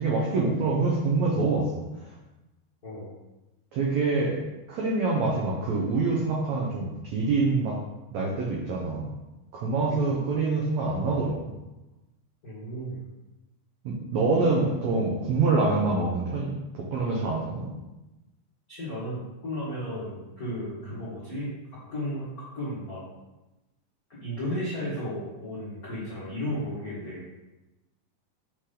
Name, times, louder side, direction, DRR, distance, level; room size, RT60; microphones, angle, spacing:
voice 1, 0.0-1.8 3.7-4.4 4.7-7.8 8.1-9.0 9.5-11.4 13.8-16.5 16.9-17.7, right 3 dB, 85° right, -3 dB, 1.5 m, -25 dB
voice 2, 12.4-13.0 18.7-21.5 21.9-23.0 24.1-27.4, equal, 85° left, -9 dB, 0.8 m, -34 dB
7.1 x 5.1 x 3.8 m, 1.0 s
omnidirectional pair, 4.6 m